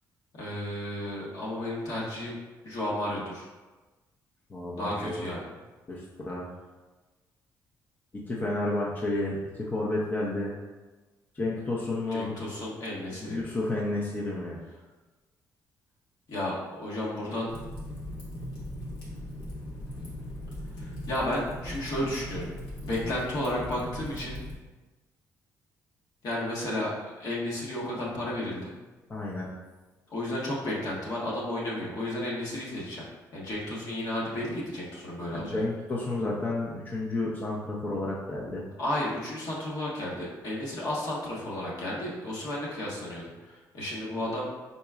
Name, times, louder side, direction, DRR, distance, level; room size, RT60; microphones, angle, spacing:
voice 1, 0.4-2.4 2.6-3.5 4.7-5.5 12.1-13.4 16.3-17.5 20.8-22.5 22.8-24.4 26.2-28.7 30.1-33.0 33.3-35.6 38.8-44.5, left 1 dB, 60° left, -5 dB, 1.3 m, -33 dB
voice 2, 4.5-5.3 5.9-6.5 8.3-10.5 11.3-12.3 13.2-14.6 29.1-29.5 35.3-38.6, left 2 dB, 25° left, -4 dB, 0.7 m, -31 dB
Fire, 17.5-24.6, left 1 dB, 85° left, 1.4 m, -39 dB
4.5 x 4.0 x 2.4 m, 1.2 s
cardioid pair, 90°, 7 cm